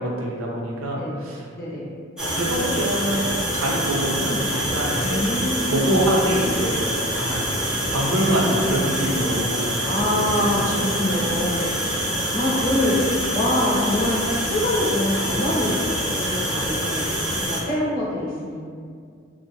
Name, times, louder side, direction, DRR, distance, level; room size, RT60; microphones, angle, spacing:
voice 1, 0.0-1.4 2.2-3.3 3.5-5.3 5.7-6.9 7.2-9.6 10.2-10.7 11.8-11.9, right 1 dB, 80° right, -2 dB, 0.5 m, -25 dB
voice 2, 1.6-1.9 3.0-3.3 5.0-6.1 8.3-8.9 9.8-17.1 17.4-18.6, left 1 dB, 45° left, -7 dB, 0.6 m, -25 dB
sound 1, 2.2-17.6, equal, 5° right, 0.4 m, -25 dB
2.7 x 2.1 x 2.7 m, 2.2 s
head